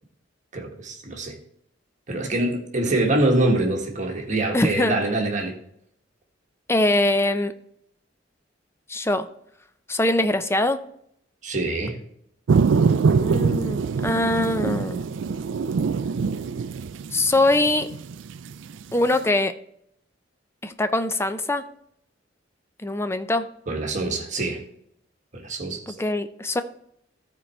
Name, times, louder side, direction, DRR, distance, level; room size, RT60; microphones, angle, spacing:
voice 1, 0.5-1.4 2.1-5.5 11.4-12.0 23.7-24.6 25.3-25.8, right 2 dB, 40° right, 2 dB, 1.6 m, -24 dB
voice 2, 4.5-4.9 6.7-7.5 8.9-9.3 9.9-10.8 13.1-15.1 17.1-17.9 18.9-19.5 20.6-21.6 22.8-23.5 25.9-26.6, left 2 dB, 15° left, 9 dB, 0.5 m, -22 dB
sound 1, 12.5-19.1, right 5 dB, 75° right, 0.4 m, -24 dB
13.5 x 4.6 x 4.3 m, 0.71 s
head